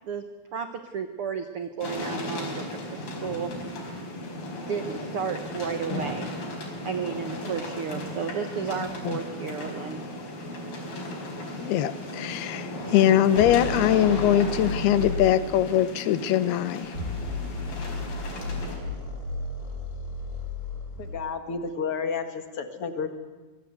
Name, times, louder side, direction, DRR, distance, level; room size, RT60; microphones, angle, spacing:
voice 1, 0.5-2.6 2.9-3.5 4.7-6.3 6.8-10.0, right 6 dB, 80° right, 8 dB, 1.2 m, -32 dB
sound 1, 1.8-18.8, left 1 dB, 70° left, 6.7 m, -35 dB
voice 2, 11.6-16.9, left 11 dB, 90° left, 14 dB, 2.9 m, -22 dB
sound 2, 13.4-15.4 16.8-21.2, left 3 dB, 25° left, 4.8 m, -33 dB
voice 3, 21.0-23.1, left 5 dB, 45° left, 7 dB, 2.3 m, -31 dB
25.0 x 22.5 x 8.1 m, 1.2 s
omnidirectional pair, 4.4 m